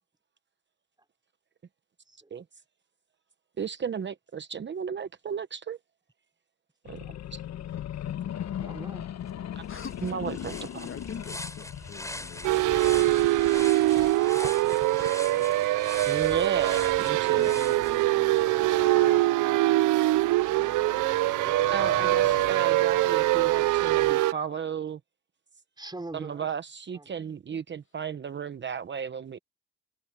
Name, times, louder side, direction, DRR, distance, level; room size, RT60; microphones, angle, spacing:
voice 1, 3.6-5.8 6.8-7.1 7.3-7.4 9.6-9.7 10.0-10.9 16.1-17.5 21.7-25.0 26.1-29.4, right 7 dB, 35° right, 0.9 m, -34 dB
sound 1, 6.8-15.6 16.0-19.3 20.1-22.5 22.9-24.1, left 11 dB, 60° left, 1.0 m, -40 dB
voice 2, 8.6-9.1 9.7-9.8 14.4-16.0 21.2-22.7 23.9-24.8 25.8-26.5 26.9-27.2, right 2 dB, 15° right, 3.9 m, -45 dB
sound 2, 9.3-9.4 9.7-18.5, left 1 dB, 10° left, 4.8 m, -42 dB
voice 3, 9.7-10.2 10.8-13.4 17.4-19.3 19.7-19.8, left 6 dB, 45° left, 1.5 m, -45 dB
sound 3, 12.4-24.3, right 17 dB, 85° right, 0.6 m, -23 dB
cardioid pair, 90°, 30 cm